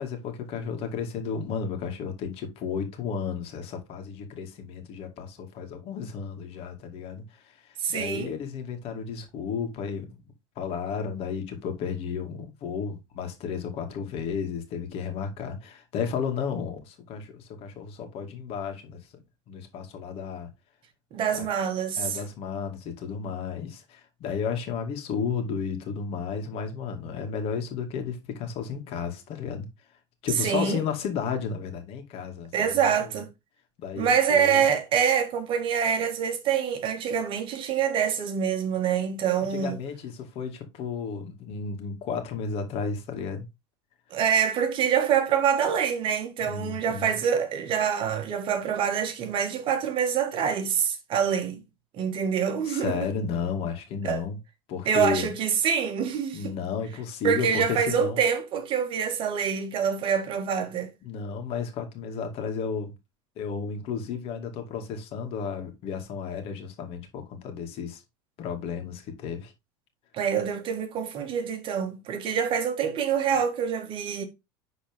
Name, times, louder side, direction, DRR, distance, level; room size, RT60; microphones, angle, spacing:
voice 1, 0.0-10.2 10.6-19.0 19.5-20.5 21.3-21.5 22.0-29.7 30.2-33.1 33.8-34.6 39.5-43.4 46.5-47.2 52.6-54.4 54.7-55.3 56.3-58.2 61.0-62.9 63.4-68.0 68.4-69.5, left 6 dB, 50° left, 2.3 m, -33 dB
voice 2, 7.8-8.3 21.1-22.2 30.4-30.8 32.5-33.3 34.0-39.8 44.1-51.6 51.9-53.1 54.0-54.2 54.8-56.5 57.2-60.9 70.1-74.2, right 7 dB, 40° right, 1.7 m, -26 dB
11.0 x 4.0 x 3.6 m
supercardioid pair, 125°, 13 cm